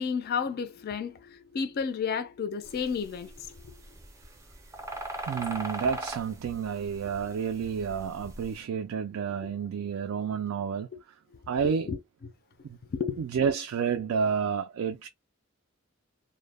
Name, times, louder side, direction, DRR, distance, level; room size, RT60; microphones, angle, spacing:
voice 1, 0.0-3.8 9.4-9.5 10.9-11.0 11.9-12.3 12.9-13.2, left 6 dB, 45° left, 0.3 m, -32 dB
sound 1, 2.7-8.5, right 1 dB, 15° right, 0.5 m, -39 dB
voice 2, 5.3-10.9 11.5-11.9 12.6-12.8 13.2-15.1, right 6 dB, 80° right, 0.3 m, -30 dB
2.1 x 2.1 x 3.2 m
head